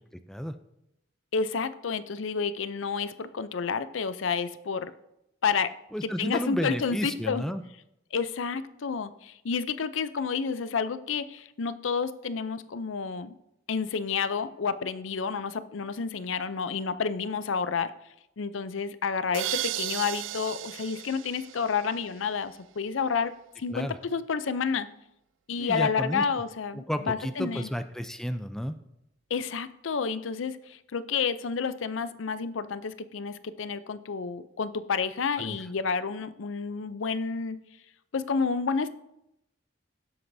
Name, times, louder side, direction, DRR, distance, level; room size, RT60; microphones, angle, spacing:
voice 1, 1.3-4.9 5.4-5.7 6.0-7.4 8.1-13.3 13.7-17.9 18.4-24.9 25.5-27.7 29.3-37.6 38.1-38.9, left 5 dB, 85° left, 14 dB, 0.5 m, -30 dB
voice 2, 5.9-7.6 23.7-24.0 25.6-26.2 26.7-28.7 35.4-35.6, equal, ahead, 8 dB, 0.4 m, -32 dB
sound 1, 19.3-22.2, right 13 dB, 80° right, 0.4 m, -35 dB
17.0 x 7.8 x 2.7 m, 0.84 s
head